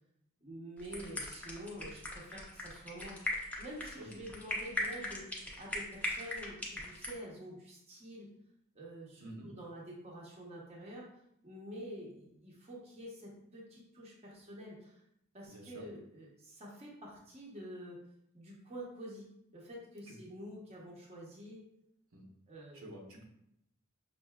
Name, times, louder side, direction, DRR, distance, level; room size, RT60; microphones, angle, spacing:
voice 1, 0.4-3.2 3.6-8.3 8.7-11.0 11.4-15.0 15.3-18.0 18.3-19.3 19.5-21.6 22.5-22.9, equal, 30° right, -4 dB, 0.8 m, -48 dB
sound 1, 0.8-7.1, left 1 dB, 5° left, 0.5 m, -39 dB
voice 2, 9.2-9.5 15.4-15.8 20.1-20.2 22.1-22.2 22.7-23.2, right 1 dB, 75° right, -1 dB, 0.8 m, -49 dB
5.4 x 2.6 x 2.3 m, 0.77 s
head